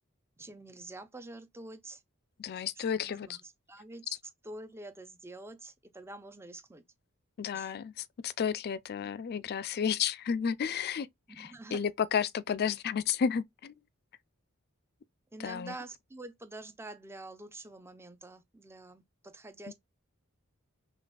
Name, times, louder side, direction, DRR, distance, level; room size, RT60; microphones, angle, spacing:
voice 1, 0.4-2.0 3.0-3.4 3.7-4.1 4.4-6.8 7.5-7.7 11.3-11.8 15.3-19.7, right 2 dB, 10° right, 0.5 m, -47 dB
voice 2, 2.4-3.4 7.4-11.1 11.4-13.7 15.4-15.8 19.7-19.8, left 7 dB, 50° left, 0.4 m, -32 dB
5.7 x 2.4 x 2.3 m
head